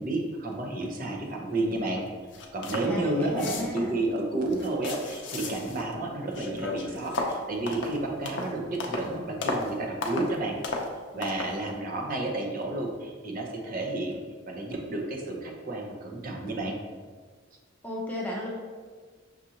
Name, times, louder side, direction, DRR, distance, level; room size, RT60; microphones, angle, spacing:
voice 1, 0.0-2.1 2.5-10.5 11.1-14.1 14.5-16.8, right 2 dB, 45° right, 0 dB, 0.6 m, -31 dB
sound 1, 2.0-2.1 2.3-2.9 3.2-3.9 4.4-6.0 6.3-9.1 9.4-9.7 10.0-10.4 10.6-10.9 11.2-11.6, left 3 dB, 60° left, 0.5 m, -34 dB
voice 2, 2.8-4.0 17.8-18.5, left 1 dB, 10° left, -3 dB, 0.6 m, -35 dB
6.1 x 2.5 x 2.8 m, 1.6 s
head